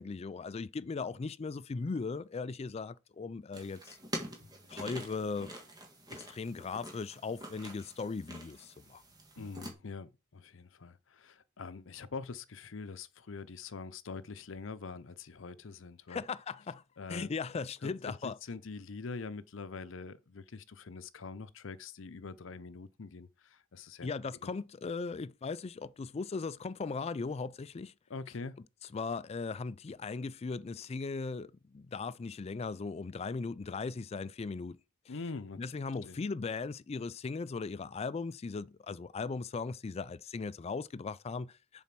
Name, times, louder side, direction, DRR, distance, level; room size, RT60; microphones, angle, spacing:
voice 1, 0.0-4.0 4.7-5.5 6.1-9.0 16.1-16.8 17.1-18.4 24.0-27.9 28.9-34.8 35.6-41.8, left 4 dB, 30° left, 0.3 m, -38 dB
sound 1, 3.5-9.7, right 1 dB, 20° right, 1.6 m, -46 dB
sound 2, 4.4-6.0 9.3-10.0, left 1 dB, 55° right, 2.2 m, -60 dB
voice 2, 9.4-16.2 17.0-17.3 17.8-24.1 24.4-24.5 28.1-28.6 35.1-35.8 36.0-36.2, left 4 dB, 65° left, 0.6 m, -44 dB
7.2 x 4.2 x 6.0 m
head